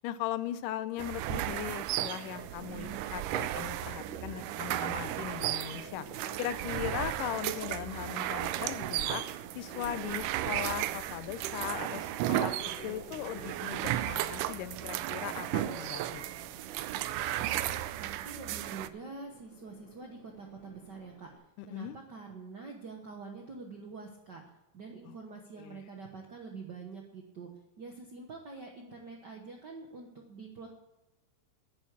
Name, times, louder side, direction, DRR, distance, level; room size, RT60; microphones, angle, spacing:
voice 1, 0.0-9.3 9.6-12.6 12.8-16.2 21.6-22.0 25.1-25.2 25.6-25.8, left 13 dB, 90° left, 14 dB, 2.3 m, -39 dB
paulien&emily, 1.0-18.9, right 13 dB, 85° right, 2.1 m, -34 dB
Subway metro underground, 2.0-21.4, left 1 dB, 20° left, 4.5 m, -53 dB
sound 1, 9.8-16.4, left 7 dB, 65° left, 2.1 m, -57 dB
voice 2, 18.0-21.3 21.7-24.4 24.7-27.5 27.8-30.7, right 4 dB, 60° right, 1 dB, 1.1 m, -46 dB
10.5 x 9.8 x 7.3 m, 1.0 s
omnidirectional pair, 3.7 m